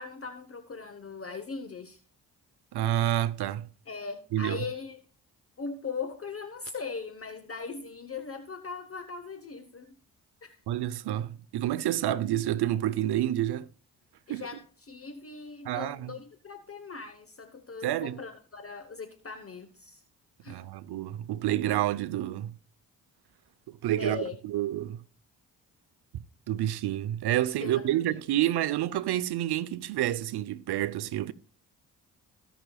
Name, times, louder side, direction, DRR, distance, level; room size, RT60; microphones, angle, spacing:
voice 1, 0.0-2.0 3.9-5.0 5.6-10.0 10.4-10.6 14.3-20.0 20.4-20.6 24.0-24.4 27.6-28.2, left 4 dB, 35° left, 1.1 m, -39 dB
voice 2, 2.7-3.7 4.3-4.6 10.7-13.7 14.3-14.4 15.6-16.1 17.8-18.2 20.5-22.5 23.7-25.0 26.1-31.3, right 13 dB, 70° right, 0.8 m, -29 dB
17.5 x 6.1 x 2.3 m
supercardioid pair, 50°, 41 cm